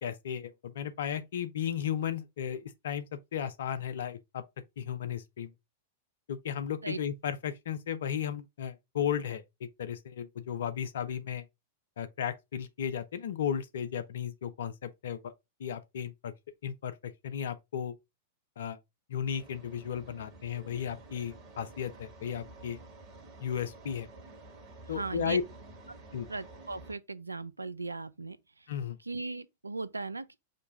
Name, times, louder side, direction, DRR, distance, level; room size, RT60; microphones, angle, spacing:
voice 1, 0.0-3.1 3.3-4.4 4.8-5.5 6.3-11.4 12.0-15.3 15.6-16.3 16.6-17.9 18.6-18.8 19.1-22.8 23.4-24.1 24.9-25.4 26.1-26.3 28.7-29.0, left 8 dB, 65° left, 0.6 m, -35 dB
sound 1, 19.3-26.9, right 2 dB, 40° right, 1.5 m, -51 dB
voice 2, 24.9-25.4 26.3-28.4 29.1-30.4, right 3 dB, 90° right, 0.4 m, -37 dB
5.2 x 2.3 x 3.9 m
figure-of-eight pair, 100°, 0 cm